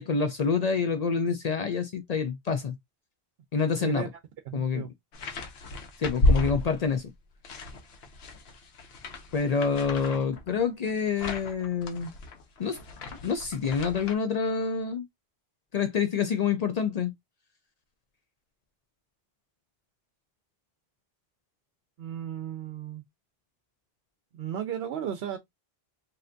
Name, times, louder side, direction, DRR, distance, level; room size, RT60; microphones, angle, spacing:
voice 1, 0.0-2.7 3.5-4.1 4.5-4.9 6.0-7.1 9.3-12.1 12.6-12.8 13.1-15.0 15.7-17.1, left 5 dB, 55° left, 0.5 m, -27 dB
voice 2, 4.5-4.9 22.0-23.0 24.3-25.4, right 9 dB, 75° right, 0.8 m, -35 dB
sound 1, 5.1-7.1 7.4-14.1, left 1 dB, 80° left, 1.0 m, -32 dB
3.3 x 2.7 x 2.5 m
omnidirectional pair, 1.0 m